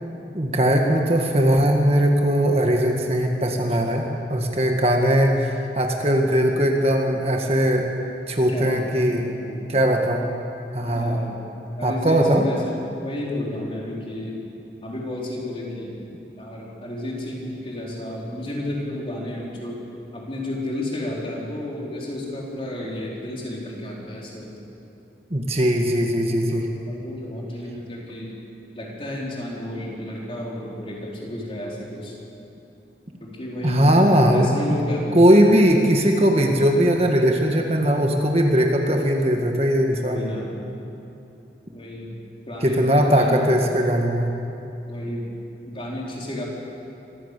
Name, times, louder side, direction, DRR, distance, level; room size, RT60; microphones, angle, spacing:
voice 1, 0.3-4.0 4.3-7.9 8.3-9.2 9.7-10.3 10.7-11.3 11.8-12.5 25.3-26.7 33.6-34.5 35.1-40.3 42.6-44.4, equal, 35° right, 2 dB, 1.7 m, -19 dB
voice 2, 8.5-9.7 10.8-11.4 11.8-14.4 14.8-15.9 16.4-19.8 20.1-24.5 26.5-28.3 28.7-32.1 33.2-34.0 34.3-35.4 39.9-40.5 41.7-42.1 42.5-43.4 44.9-45.3 45.7-46.4, left 1 dB, 30° left, -4 dB, 4.6 m, -32 dB
25.5 x 16.0 x 8.3 m, 2.8 s
head